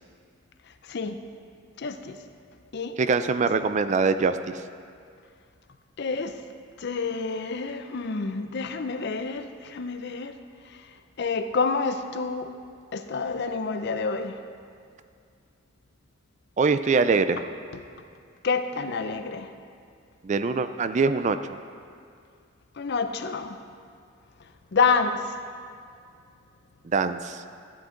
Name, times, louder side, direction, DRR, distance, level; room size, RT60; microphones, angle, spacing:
voice 1, 0.9-1.2 1.8-2.2 2.7-3.0 6.0-6.4 6.8-10.4 11.2-12.5 12.9-14.4 17.7-17.8 18.4-19.5 22.8-23.6 24.7-25.3, left 4 dB, 60° left, 9 dB, 0.6 m, -28 dB
voice 2, 3.0-4.4 16.6-17.4 20.2-21.4 26.8-27.4, right 4 dB, 35° right, 11 dB, 0.3 m, -23 dB
13.5 x 8.5 x 3.8 m, 2.3 s
head